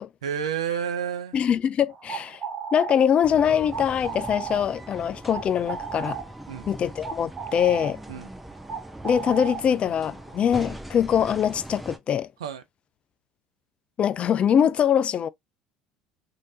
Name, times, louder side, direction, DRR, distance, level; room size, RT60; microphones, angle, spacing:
voice 1, 0.2-1.4 6.5-6.7 8.1-8.3 12.4-12.6, right 8 dB, 85° right, 0.6 m, -30 dB
voice 2, 1.3-2.4 2.7-6.2 6.7-8.0 9.0-12.3 14.0-15.3, left 8 dB, 40° left, 0.4 m, -23 dB
sound 1, 1.9-10.7, right 7 dB, 35° right, 1.6 m, -37 dB
sound 2, 3.2-12.0, right 1 dB, 5° right, 0.8 m, -41 dB
3.2 x 2.9 x 2.7 m
hypercardioid pair, 70°, 3 cm